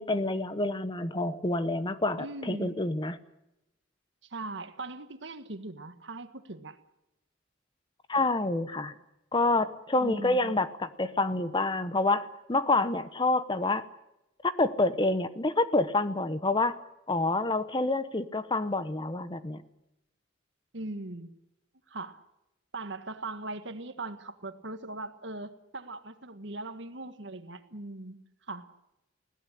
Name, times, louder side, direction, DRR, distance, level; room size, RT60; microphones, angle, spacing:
voice 1, 0.0-3.2 8.1-8.9 9.3-13.8 14.4-16.8 17.1-19.6, left 2 dB, 25° left, 12 dB, 0.9 m, -28 dB
voice 2, 2.2-2.7 4.3-6.8 10.0-10.5 20.7-21.3 21.9-22.2 22.7-28.2 28.5-28.7, right 2 dB, 60° right, 9 dB, 1.7 m, -40 dB
20.5 x 17.0 x 9.9 m, 0.89 s
head